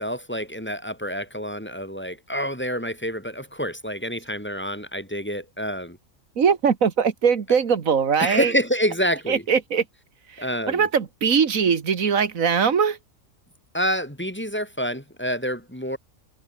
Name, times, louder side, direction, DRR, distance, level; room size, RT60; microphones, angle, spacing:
voice 1, 0.0-6.0 8.2-9.4 10.4-10.9 13.7-16.0, equal, 10° left, 3.8 m, -27 dB
voice 2, 6.4-8.5 9.3-9.8 10.3-13.0, right 6 dB, 85° right, 1.9 m, -21 dB
omnidirectional pair, 1.4 m